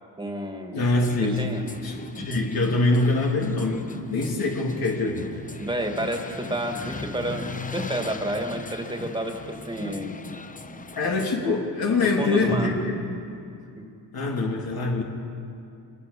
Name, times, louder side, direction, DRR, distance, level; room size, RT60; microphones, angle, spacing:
voice 1, 0.2-0.8 1.4-1.6 5.6-9.4 9.7-10.2 10.6-11.1 12.0-12.7 13.8-13.9, right 1 dB, 10° right, 3 dB, 2.5 m, -30 dB
voice 2, 0.7-1.4 1.8-5.3 10.9-12.9 14.1-15.0, left 2 dB, 55° left, -1 dB, 3.3 m, -24 dB
sound 1, 1.0-11.3, left 4 dB, 20° left, 1.0 m, -39 dB
25.5 x 20.5 x 7.1 m, 2.6 s
cardioid pair, 120°, 42 cm